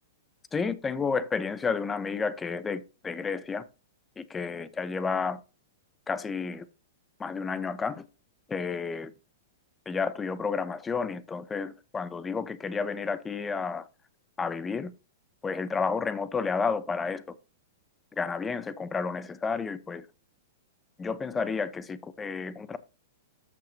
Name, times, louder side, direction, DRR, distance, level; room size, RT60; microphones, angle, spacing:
voice 1, 0.5-3.6 4.2-5.4 6.1-6.6 7.2-8.0 8.5-9.1 9.9-13.8 14.4-14.9 15.4-17.2 18.2-20.0 21.0-22.8, left 5 dB, 15° left, 0.8 m, -31 dB
13.5 x 5.7 x 2.8 m
hypercardioid pair, 125°, 0 cm